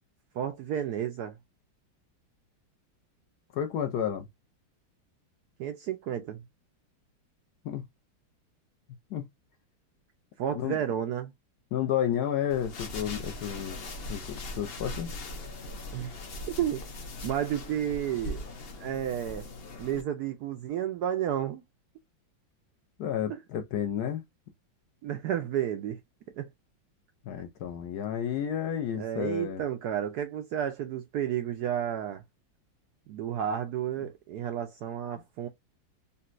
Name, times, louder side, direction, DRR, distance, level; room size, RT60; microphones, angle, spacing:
voice 1, 0.3-1.4 5.6-6.4 10.4-11.3 15.9-16.2 16.5-16.8 17.2-18.4 18.8-19.5 19.8-21.6 25.0-26.0 26.4-26.5 29.0-32.2 33.1-35.5, right 10 dB, 75° right, 0.9 m, -31 dB
voice 2, 3.5-4.3 7.6-7.9 9.1-9.2 10.6-10.8 11.7-13.8 14.1-15.1 23.0-24.2 27.3-29.6, left 9 dB, 75° left, 0.9 m, -31 dB
sound 1, 12.5-20.0, left 2 dB, 90° left, 0.5 m, -40 dB
4.0 x 2.2 x 2.4 m
omnidirectional pair, 2.1 m